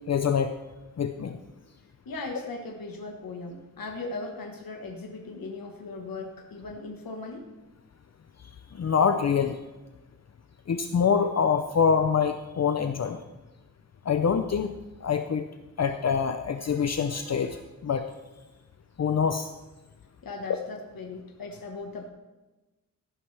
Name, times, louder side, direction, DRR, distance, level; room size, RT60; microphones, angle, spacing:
voice 1, 0.1-0.5 1.0-1.4 8.7-9.6 10.7-13.2 14.1-14.7 15.0-15.5 15.8-18.0 19.0-19.5, left 6 dB, 50° left, 7 dB, 0.6 m, -25 dB
voice 2, 2.0-7.5 20.2-22.1, left 3 dB, 80° left, 3 dB, 1.4 m, -38 dB
15.0 x 11.5 x 3.4 m, 1.1 s
wide cardioid pair, 165°, 34 cm